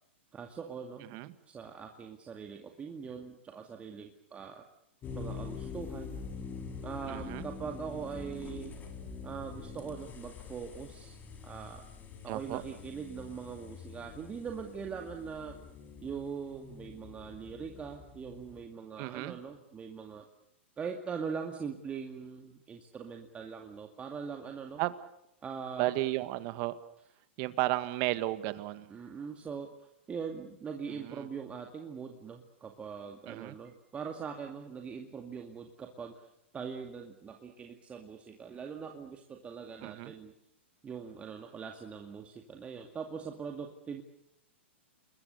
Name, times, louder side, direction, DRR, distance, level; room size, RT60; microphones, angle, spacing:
voice 1, 0.3-1.1 1.5-4.6 5.1-6.2 6.8-8.8 9.2-11.2 11.4-11.8 12.2-15.6 16.0-20.3 20.8-24.8 25.4-26.0 28.9-29.7 30.1-36.2 36.5-40.3 40.8-44.0, right 6 dB, 20° right, 3 dB, 2.2 m, -42 dB
sound 1, 5.0-18.6, left 5 dB, 25° left, 4.6 m, -45 dB
voice 2, 7.1-7.4 12.3-12.6 19.0-19.4 24.8-24.9 25.8-26.8 27.4-28.9 30.9-31.3 33.3-33.6 39.8-40.1, right 18 dB, 40° right, 13 dB, 1.8 m, -33 dB
29.5 x 21.5 x 6.9 m, 0.79 s
hypercardioid pair, 125°, 7 cm